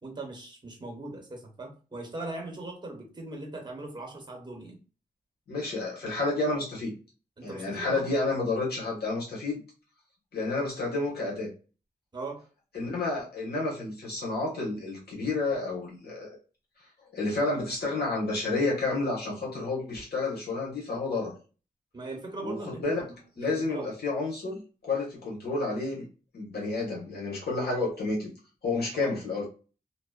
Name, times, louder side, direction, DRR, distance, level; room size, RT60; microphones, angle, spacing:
voice 1, 0.0-4.8 7.4-8.1 12.1-12.4 21.9-24.0 28.9-29.2, right 2 dB, 30° right, 1 dB, 0.9 m, -40 dB
voice 2, 5.5-6.9 7.4-9.6 10.3-11.5 12.7-16.4 17.1-21.3 22.4-23.0 23.4-26.0 26.3-28.3 28.6-29.4, left 3 dB, 80° left, -4 dB, 1.2 m, -30 dB
2.8 x 2.1 x 2.3 m, 0.35 s
wide cardioid pair, 105°, 16 cm